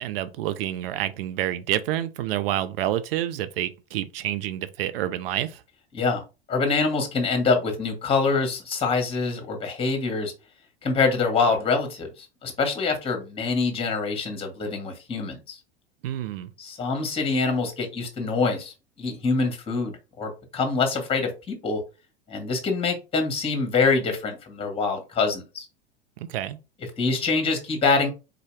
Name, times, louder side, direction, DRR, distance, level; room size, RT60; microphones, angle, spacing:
voice 1, 0.0-5.6 16.0-16.5 26.2-26.6, right 12 dB, 65° right, 0.5 m, -28 dB
voice 2, 6.5-10.3 10.8-15.6 16.6-21.8 22.3-25.7 27.0-28.1, left 4 dB, 20° left, 1.3 m, -25 dB
3.9 x 2.7 x 3.1 m
hypercardioid pair, 90°, 31 cm